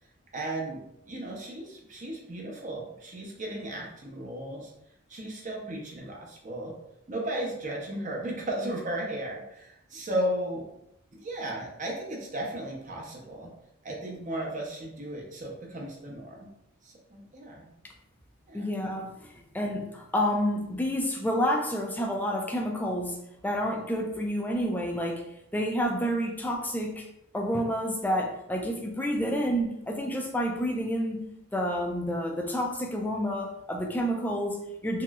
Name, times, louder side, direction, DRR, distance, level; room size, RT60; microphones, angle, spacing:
voice 1, 0.3-4.7 5.1-6.7 7.1-10.7 11.1-13.5 13.8-16.5 16.8-17.7 18.5-18.7, right 1 dB, 40° right, -1 dB, 0.7 m, -35 dB
voice 2, 18.5-23.2 23.4-25.2 25.5-27.1 27.3-35.0, equal, 10° left, 1 dB, 0.3 m, -29 dB
3.1 x 2.9 x 2.3 m, 0.81 s
head